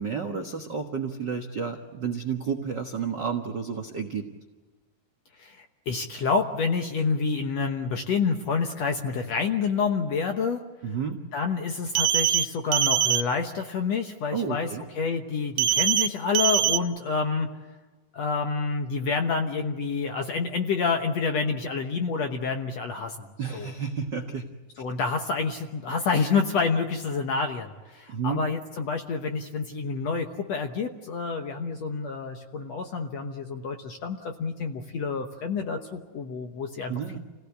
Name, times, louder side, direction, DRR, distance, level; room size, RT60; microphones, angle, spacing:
voice 1, 0.0-4.2 10.8-11.2 14.3-14.9 23.4-24.4 28.1-28.4 36.9-37.2, right 6 dB, 70° right, 3 dB, 1.0 m, -31 dB
voice 2, 5.4-10.6 11.3-17.6 18.1-23.3 23.5-23.7 24.8-37.2, left 5 dB, 65° left, 5 dB, 1.8 m, -28 dB
sound 1, 11.9-12.4 12.7-13.2 15.6-16.1 16.3-16.8, right 10 dB, 90° right, 2.8 m, -22 dB
28.5 x 17.0 x 8.3 m, 1.3 s
omnidirectional pair, 4.3 m